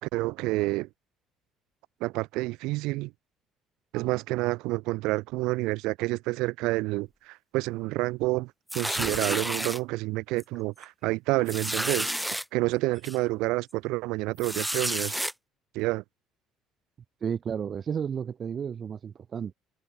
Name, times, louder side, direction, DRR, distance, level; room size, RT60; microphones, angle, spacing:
voice 1, 0.0-0.9 2.0-3.1 3.9-12.1 12.5-15.2 15.7-16.0, right 21 dB, 80° right, 5.7 m, -29 dB
sound 1, 8.7-9.8 10.4-10.6 10.8-10.9 11.5-12.4 13.0-13.2 14.4-15.3, equal, ahead, 3.2 m, -30 dB
voice 2, 17.2-19.5, right 7 dB, 35° right, 7.7 m, -32 dB
cardioid pair, 125°, 0 cm